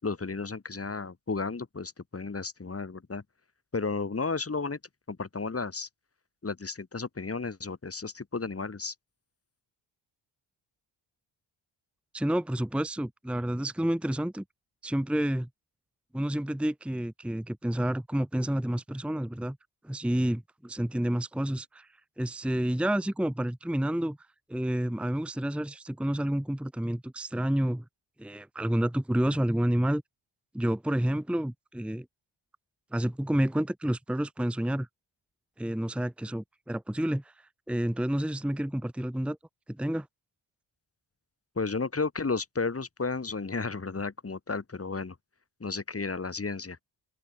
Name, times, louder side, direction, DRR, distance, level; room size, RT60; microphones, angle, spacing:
voice 1, 0.0-3.2 3.7-4.8 5.1-5.9 6.4-8.9 41.6-45.2 45.6-46.8, left 4 dB, 30° left, 5.7 m, -33 dB
voice 2, 12.1-14.4 14.8-15.5 16.1-19.6 19.8-21.9 22.2-24.2 24.5-27.8 28.2-30.0 30.5-32.1 32.9-34.9 35.6-39.4 39.7-40.1, right 1 dB, ahead, 1.1 m, -29 dB
open air
cardioid pair, 95°, 46 cm